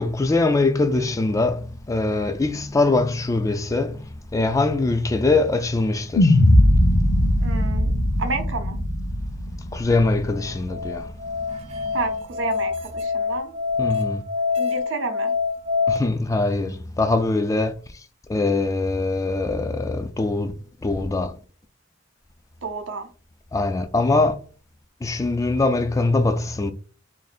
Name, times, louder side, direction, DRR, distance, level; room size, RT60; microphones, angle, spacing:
voice 1, 0.0-6.4 9.7-11.1 11.5-11.9 13.8-14.2 15.9-17.8 18.3-20.5 20.8-21.4 23.5-24.4 25.0-26.7, left 3 dB, 15° left, 0.3 m, -22 dB
sound 1, 6.2-10.5, left 1 dB, 85° left, 0.7 m, -19 dB
voice 2, 7.4-7.9 8.2-8.8 11.9-13.5 14.6-15.3 22.6-23.1, right 3 dB, 80° right, 0.8 m, -30 dB
Musical instrument, 10.3-16.0, left 5 dB, 35° right, 0.6 m, -25 dB
2.9 x 2.6 x 4.1 m
head